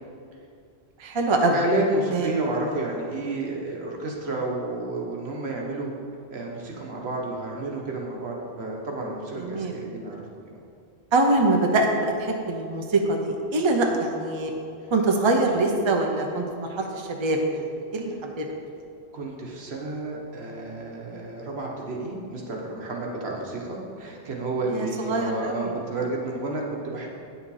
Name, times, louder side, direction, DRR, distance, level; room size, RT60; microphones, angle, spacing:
voice 1, 1.0-1.6 2.1-2.3 9.4-9.8 11.1-14.5 14.9-18.5 24.7-25.7, right 2 dB, 30° right, 2 dB, 0.7 m, -24 dB
voice 2, 1.5-5.9 6.3-10.2 19.1-27.1, right 2 dB, 70° right, -1 dB, 1.5 m, -31 dB
8.9 x 6.5 x 4.8 m, 2.4 s
omnidirectional pair, 1.1 m